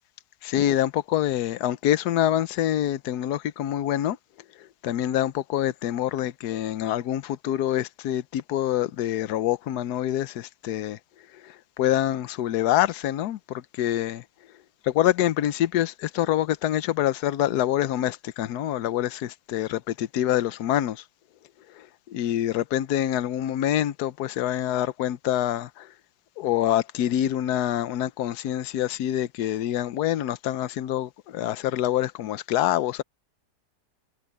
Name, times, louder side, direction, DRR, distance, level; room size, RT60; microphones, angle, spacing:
voice 1, 0.4-4.2 4.6-11.0 11.4-14.2 14.8-21.0 21.7-25.9 26.4-33.0, left 12 dB, 75° left, 1.3 m, -26 dB
omnidirectional pair, 1.7 m